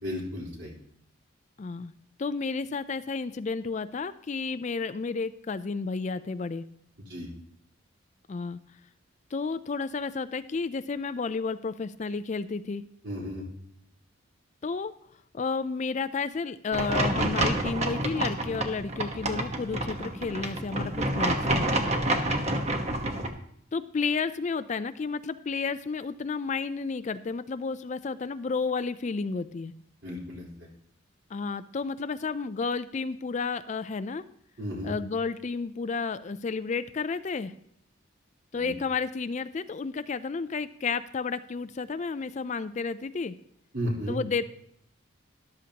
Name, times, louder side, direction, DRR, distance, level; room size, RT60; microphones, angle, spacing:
voice 1, 0.0-0.7 7.1-7.3 13.0-13.4 22.1-22.3 30.0-30.7 34.6-34.9 38.5-38.7 43.7-44.2, equal, 60° right, -3 dB, 3.9 m, -34 dB
voice 2, 1.6-1.9 2.2-6.6 8.3-8.6 9.3-12.8 14.6-14.9 15.3-21.7 23.7-29.7 31.3-34.2 34.8-37.5 38.5-43.4 44.1-44.4, left 4 dB, 35° left, 13 dB, 0.4 m, -31 dB
sound 1, 16.7-23.3, right 1 dB, 30° right, 1.1 m, -28 dB
13.5 x 12.0 x 2.9 m, 0.69 s
head